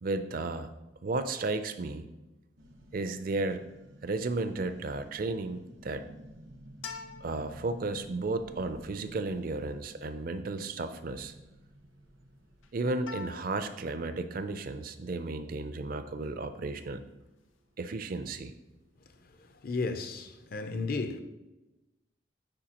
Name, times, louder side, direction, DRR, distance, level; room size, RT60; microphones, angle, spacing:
voice 1, 0.0-0.7 1.0-2.1 2.9-3.6 4.0-6.1 7.2-11.3 12.7-17.0 17.8-18.5, right 3 dB, 45° right, 0.4 m, -33 dB
sound 1, 2.6-14.5, equal, 80° right, 1.0 m, -54 dB
sound 2, 6.7-19.5, left 5 dB, 90° left, 0.6 m, -51 dB
voice 2, 19.2-21.2, left 3 dB, 50° left, 0.5 m, -34 dB
8.7 x 4.9 x 2.9 m
head